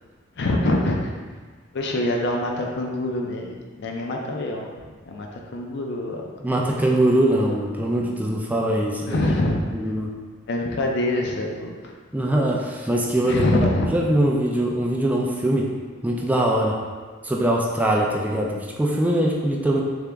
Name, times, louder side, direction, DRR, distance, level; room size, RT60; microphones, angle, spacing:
voice 1, 0.4-1.1 1.7-4.7 5.1-6.2 7.3-7.4 9.1-9.6 10.5-11.9 13.3-13.9, left 1 dB, 60° left, 0 dB, 0.5 m, -25 dB
voice 2, 6.4-9.2 9.7-10.1 12.1-15.7 16.0-16.8 17.2-19.8, right 1 dB, 10° right, -2 dB, 0.3 m, -22 dB
3.6 x 2.9 x 3.3 m, 1.5 s
head